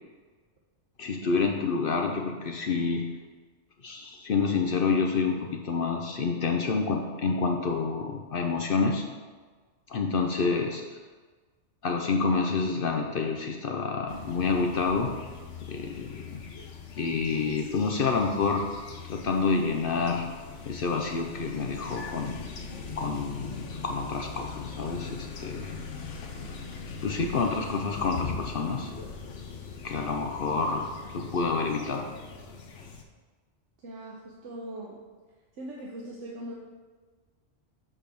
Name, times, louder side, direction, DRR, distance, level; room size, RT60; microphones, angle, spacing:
voice 1, 1.0-3.1 3.8-9.0 9.9-10.8 11.8-15.1 15.7-16.4 17.0-20.3 20.7-22.4 23.0-25.7 27.0-28.9 29.8-32.1, left 4 dB, 55° left, 2 dB, 0.8 m, -28 dB
sound 1, 14.1-33.0, left 5 dB, 85° left, 1.1 m, -41 dB
voice 2, 33.8-35.0 35.6-36.5, right 1 dB, 85° right, -2 dB, 1.2 m, -40 dB
7.7 x 3.4 x 6.1 m, 1.4 s
omnidirectional pair, 1.2 m